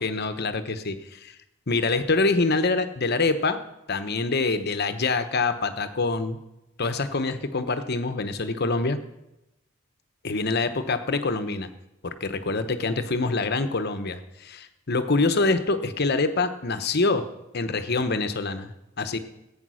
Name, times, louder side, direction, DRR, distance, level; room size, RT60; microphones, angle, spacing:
voice 1, 0.0-1.4 1.7-3.6 3.9-6.4 6.8-9.0 10.2-11.7 12.0-17.3 17.5-19.2, left 3 dB, 50° left, 10 dB, 1.0 m, -25 dB
15.5 x 9.0 x 6.3 m, 0.92 s
head